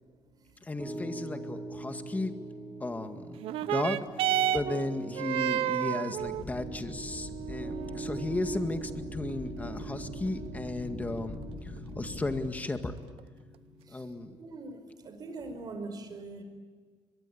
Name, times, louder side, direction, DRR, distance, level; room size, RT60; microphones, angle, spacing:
voice 1, 0.6-2.4 2.8-4.0 4.5-13.0 13.9-14.4, left 2 dB, 15° left, 7 dB, 2.0 m, -35 dB
Piano, 0.8-14.1, right 1 dB, 5° right, 4.2 m, -44 dB
sound 1, 3.4-12.4 13.2-13.3, right 12 dB, 85° right, 0.8 m, -34 dB
sound 2, 6.2-12.5, left 3 dB, 50° left, 7.3 m, -43 dB
voice 2, 14.4-14.8 15.0-16.4, right 3 dB, 45° right, 7 dB, 5.2 m, -41 dB
23.0 x 23.0 x 8.7 m, 1.5 s
cardioid pair, 120°, 9 cm